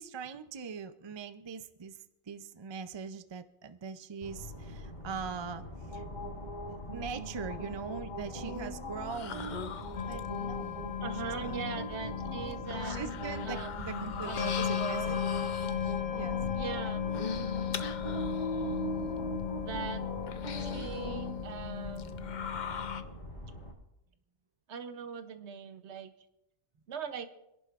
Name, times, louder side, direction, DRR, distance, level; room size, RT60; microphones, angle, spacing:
voice 1, 0.0-6.0 6.9-9.6 10.1-10.9 11.2-11.6 12.8-15.2 16.1-16.4, right 6 dB, 35° right, 10 dB, 0.4 m, -42 dB
sound 1, 4.2-23.7, equal, 30° left, 4.9 m, -40 dB
sound 2, 9.0-10.5 11.7-11.8 12.5-16.0 17.0-18.6 19.2-19.3 20.3-21.2 22.0-23.0, left 6 dB, 50° left, 0.6 m, -41 dB
sound 3, 10.0-23.0, left 9 dB, 80° left, 1.2 m, -37 dB
voice 2, 11.0-13.0 13.4-15.2 16.5-17.6 19.6-20.1 20.6-22.2 24.7-26.1 26.9-27.3, right 6 dB, 70° right, 9 dB, 1.1 m, -41 dB
26.0 x 11.0 x 2.5 m, 0.90 s
omnidirectional pair, 1.2 m